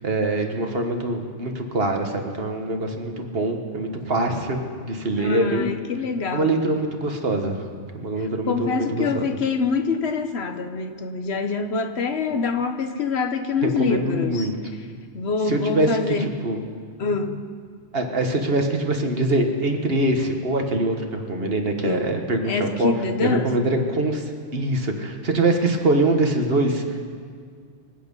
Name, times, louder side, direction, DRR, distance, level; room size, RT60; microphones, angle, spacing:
voice 1, 0.0-5.7 6.3-7.7 7.9-9.3 13.6-14.5 15.4-16.6 17.9-22.9 23.2-27.1, right 2 dB, 55° right, 4 dB, 1.6 m, -24 dB
voice 2, 5.2-6.5 8.2-14.5 15.1-16.3 17.0-17.4 21.8-22.1 22.4-23.5, left 4 dB, 65° left, 7 dB, 1.2 m, -25 dB
25.0 x 8.6 x 5.4 m, 2.1 s
omnidirectional pair, 1.2 m